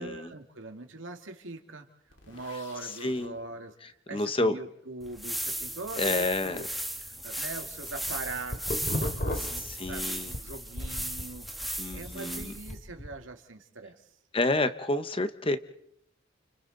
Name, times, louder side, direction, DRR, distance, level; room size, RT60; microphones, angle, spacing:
voice 1, 0.0-6.7 7.0-14.0, right 3 dB, 80° right, 5 dB, 2.2 m, -42 dB
sound 1, 2.1-3.3, left 3 dB, 70° left, 4.7 m, -52 dB
voice 2, 3.0-3.3 4.1-4.6 6.0-6.6 9.7-10.3 11.8-12.5 14.3-15.6, left 2 dB, 25° left, 10 dB, 1.0 m, -29 dB
sound 2, 5.0-12.8, right 1 dB, ahead, 1.6 m, -36 dB
sound 3, 7.9-10.4 10.8-13.1, left 1 dB, 45° left, 2.8 m, -35 dB
30.0 x 29.5 x 4.0 m, 0.75 s
head